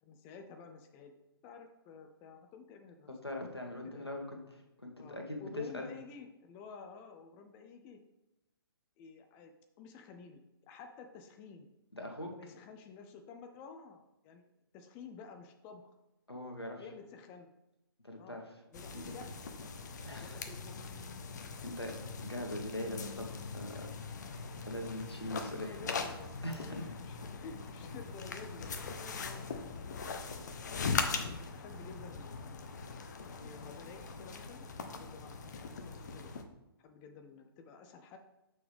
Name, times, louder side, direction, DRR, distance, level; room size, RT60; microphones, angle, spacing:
voice 1, 0.0-1.2 1.4-3.1 3.9-4.1 5.0-8.0 9.0-9.5 9.8-10.4 10.7-11.7 12.4-14.4 14.7-15.9 16.8-17.5 18.2-18.4 18.7-19.4 20.1-20.8 21.6-21.7 22.3-22.8 25.4-30.0 30.6-32.9 33.3-36.3 36.8-38.2, left 5 dB, 15° left, 5 dB, 0.4 m, -52 dB
voice 2, 3.1-5.9 11.9-12.5 16.3-16.9 18.0-18.5 18.9-19.1 20.0-20.4 21.6-24.0 24.3-25.9 26.4-27.0, left 1 dB, 85° left, 2 dB, 1.6 m, -42 dB
sound 1, 18.7-36.4, left 5 dB, 45° left, 0.8 m, -41 dB
6.8 x 6.1 x 3.4 m, 0.97 s
figure-of-eight pair, 130°, 13 cm